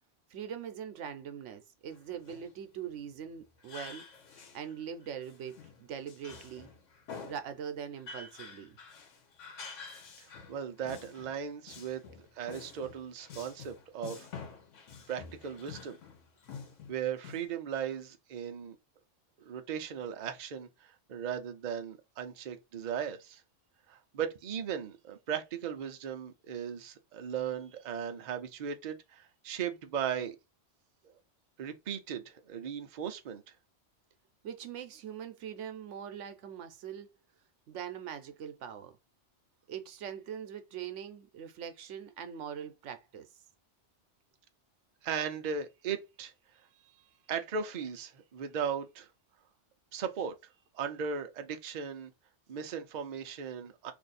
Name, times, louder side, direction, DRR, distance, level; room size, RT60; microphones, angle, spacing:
voice 1, 0.3-4.1 4.3-6.7 7.2-8.8 34.4-37.1 37.7-39.0 39.7-43.3, right 8 dB, 85° right, 1.0 m, -42 dB
Male speech man speaking, 1.9-2.5 3.6-4.8 5.0-7.5 8.0-11.4 11.7-17.5, left 5 dB, 85° left, 1.2 m, -48 dB
voice 2, 10.2-14.3 15.1-16.0 16.9-18.8 19.4-23.4 23.9-30.4 31.6-33.4 45.0-46.3 47.3-49.1 49.9-50.3 50.7-52.1 52.5-53.9, right 7 dB, 50° right, 0.6 m, -37 dB
2.7 x 2.5 x 4.0 m
omnidirectional pair, 1.2 m